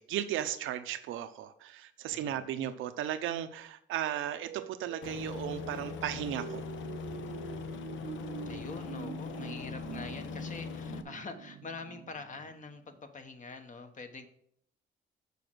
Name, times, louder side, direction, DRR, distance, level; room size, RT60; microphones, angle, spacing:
voice 1, 0.0-6.6, right 11 dB, 90° right, 10 dB, 0.7 m, -35 dB
voice 2, 2.1-2.5 8.4-14.3, left 4 dB, 40° left, 7 dB, 1.2 m, -45 dB
sound 1, 4.0-13.0, right 9 dB, 55° right, 0.6 m, -46 dB
Aircraft, 5.0-11.0, left 6 dB, 75° left, 0.7 m, -41 dB
6.9 x 5.0 x 6.2 m, 0.67 s
cardioid pair, 90°, 20 cm